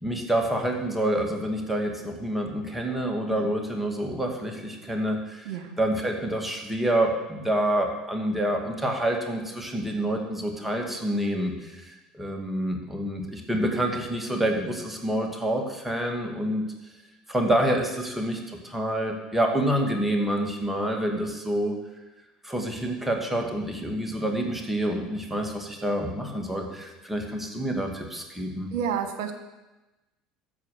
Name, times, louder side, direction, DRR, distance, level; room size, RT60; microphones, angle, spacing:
voice 1, 0.0-5.4 5.8-16.7 17.3-21.8 22.4-28.7, right 1 dB, 5° right, 2 dB, 2.2 m, -27 dB
voice 2, 28.7-29.3, right 8 dB, 65° right, 6 dB, 1.4 m, -31 dB
14.0 x 4.9 x 6.6 m, 1.1 s
hypercardioid pair, 70°, 3 cm